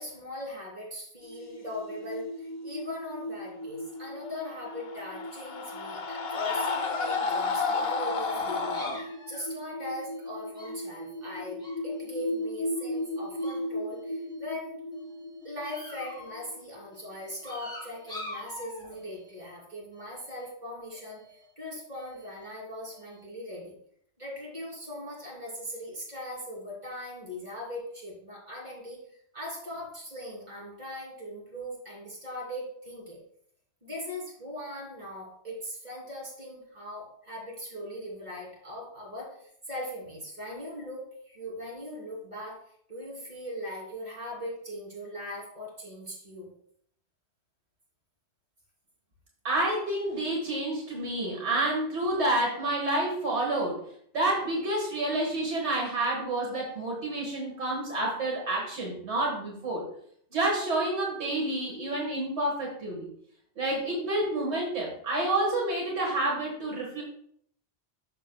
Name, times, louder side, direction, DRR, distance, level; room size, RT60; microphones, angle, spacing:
voice 1, 0.0-11.6 11.8-14.8 15.4-21.2 21.6-23.7 24.2-29.0 29.3-33.2 33.8-42.6 42.9-46.5, left 1 dB, 40° right, -4 dB, 3.3 m, -40 dB
sound 1, 1.2-17.5, left 1 dB, 80° left, 1.4 m, -38 dB
Screaming, 4.5-9.0, left 4 dB, 65° left, 1.0 m, -31 dB
sound 2, 8.7-12.5 12.8-13.7 13.9-14.5 14.9-16.5 16.9-19.5 19.9-20.5 20.9-21.5 21.9-22.5 22.9-23.2, left 2 dB, 5° left, 1.9 m, -47 dB
voice 2, 49.4-53.8 54.1-59.9 60.3-63.1 63.6-67.0, right 2 dB, 85° right, -2 dB, 1.9 m, -29 dB
12.0 x 6.5 x 2.3 m, 0.66 s
omnidirectional pair, 1.1 m